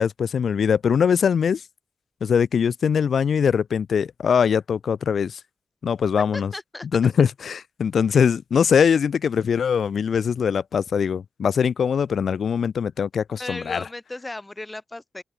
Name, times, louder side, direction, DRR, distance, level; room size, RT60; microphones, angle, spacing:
voice 1, 0.0-1.6 2.2-5.4 5.8-6.5 6.9-13.8, left 7 dB, 60° left, 0.8 m, -22 dB
voice 2, 6.3-6.9 8.1-8.2 13.4-15.2, left 2 dB, 15° left, 3.8 m, -36 dB
open air
wide cardioid pair, 170°, 0 cm